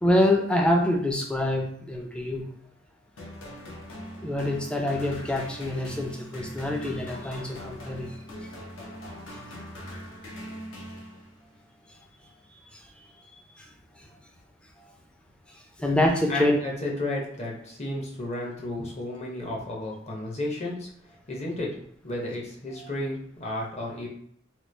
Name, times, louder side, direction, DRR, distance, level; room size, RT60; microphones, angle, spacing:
voice 1, 0.0-2.4 4.2-8.5 11.9-12.0 12.7-12.8 13.6-13.7 14.0-14.1 15.5-16.6 22.8-22.9, left 1 dB, 5° left, 1 dB, 0.4 m, -26 dB
sound 1, 3.2-11.5, equal, 75° left, 0.7 m, -41 dB
voice 2, 16.3-20.9 21.3-21.8 22.0-24.1, left 1 dB, 35° left, -2 dB, 0.7 m, -32 dB
3.1 x 2.3 x 3.2 m, 0.66 s
head